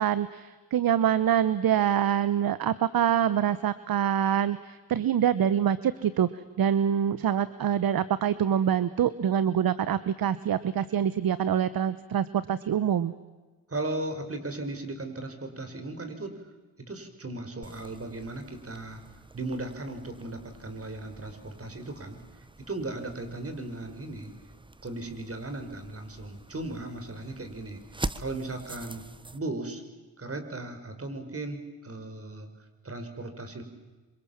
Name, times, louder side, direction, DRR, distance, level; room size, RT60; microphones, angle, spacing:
voice 1, 0.0-6.3 6.6-13.1, right 9 dB, 55° right, 16 dB, 1.1 m, -25 dB
voice 2, 13.7-16.4 16.8-19.0 19.3-22.2 22.7-24.3 24.8-27.8 28.2-29.0 29.3-29.8 30.2-32.5 32.8-33.6, right 2 dB, 30° right, 6 dB, 5.4 m, -36 dB
sound 1, 17.6-29.4, right 2 dB, 10° right, 1.2 m, -44 dB
26.5 x 25.5 x 7.3 m, 1.3 s
supercardioid pair, 65°, 43 cm